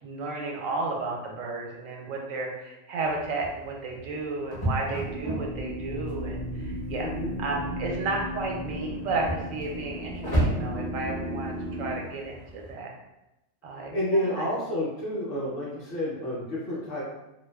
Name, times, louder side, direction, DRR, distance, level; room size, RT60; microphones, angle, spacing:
voice 1, 0.0-7.1 7.4-12.9 13.6-14.5, right 3 dB, 85° right, 0 dB, 1.0 m, -33 dB
sound 1, 3.0-12.7, right 1 dB, 25° left, 0.5 m, -34 dB
sound 2, 4.7-11.9, equal, 60° right, 0.6 m, -35 dB
voice 2, 6.9-7.4 13.9-17.0, left 1 dB, 55° left, -6 dB, 0.8 m, -30 dB
2.4 x 2.3 x 2.2 m, 0.93 s
omnidirectional pair, 1.3 m